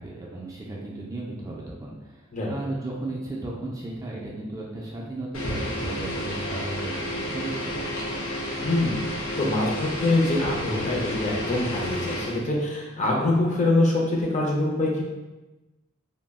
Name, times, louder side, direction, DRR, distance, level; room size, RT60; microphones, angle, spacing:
voice 1, 0.0-8.2, right 2 dB, 15° right, -4 dB, 0.3 m, -35 dB
sound 1, 5.3-12.4, equal, 80° left, 0.7 m, -31 dB
voice 2, 8.6-15.0, left 2 dB, 35° left, -2 dB, 0.5 m, -24 dB
2.3 x 2.0 x 3.4 m, 1.1 s
head